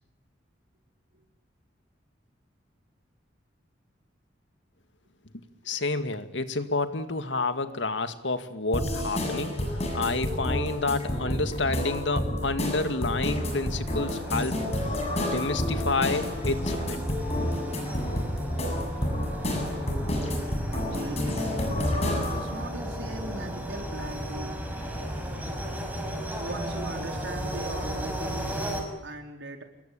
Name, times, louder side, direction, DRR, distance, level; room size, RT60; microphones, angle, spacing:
voice 1, 5.3-17.0, left 3 dB, 80° left, 10 dB, 2.1 m, -30 dB
sound 1, 8.7-22.5, left 1 dB, 35° left, 7.8 m, -30 dB
sound 2, 13.5-28.8, equal, 10° right, 5.8 m, -35 dB
voice 2, 20.7-21.4 22.3-24.5 26.3-28.7 29.0-29.6, right 2 dB, 80° right, 4 dB, 4.6 m, -39 dB
28.0 x 21.5 x 8.8 m, 0.83 s
head